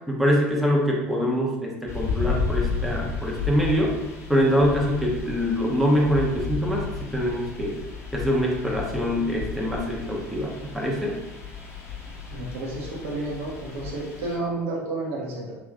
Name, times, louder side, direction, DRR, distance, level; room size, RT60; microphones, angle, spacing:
voice 1, 0.1-3.9 4.3-7.8 8.1-11.2, equal, ahead, -3 dB, 1.0 m, -24 dB
sound 1, 1.9-14.4, left 5 dB, 40° left, 1.0 m, -33 dB
voice 2, 12.3-15.6, right 2 dB, 70° right, -4 dB, 1.1 m, -31 dB
3.3 x 3.1 x 3.7 m, 0.98 s
hypercardioid pair, 70°, 7 cm